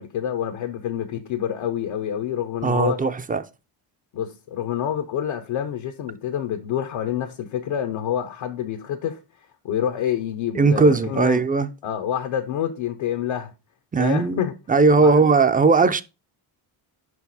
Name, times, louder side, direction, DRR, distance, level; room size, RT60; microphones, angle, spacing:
voice 1, 0.0-3.0 4.1-11.4 11.8-13.5 14.0-14.5 14.9-15.4, left 9 dB, 75° left, 0.9 m, -27 dB
voice 2, 2.6-3.4 10.5-11.7 13.9-16.0, right 4 dB, 20° right, 0.4 m, -18 dB
5.3 x 4.7 x 4.0 m
supercardioid pair, 65°, 48 cm